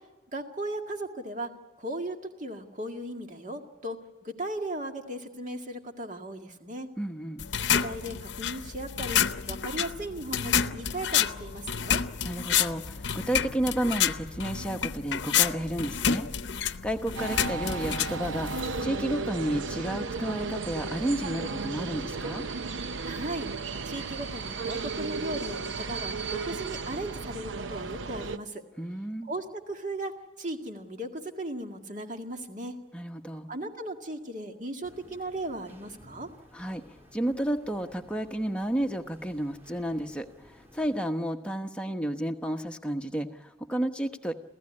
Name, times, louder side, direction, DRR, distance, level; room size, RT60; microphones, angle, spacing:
voice 1, 0.3-1.5 1.8-6.9 7.7-9.2 9.5-12.0 23.0-28.6 29.2-30.1 30.4-32.8 33.5-36.3, right 1 dB, 40° right, 4 dB, 2.0 m, -37 dB
voice 2, 7.0-7.4 12.2-18.5 18.8-22.5 28.8-29.3 32.9-33.5 36.5-44.3, right 1 dB, 5° left, 4 dB, 1.1 m, -32 dB
sound 1, 7.4-18.9, left 8 dB, 70° left, 0.7 m, -29 dB
sound 2, 17.2-28.4, right 4 dB, 90° right, 0.8 m, -34 dB
sound 3, 34.8-41.0, left 1 dB, 10° right, 2.8 m, -55 dB
28.0 x 15.5 x 9.8 m, 1.2 s
head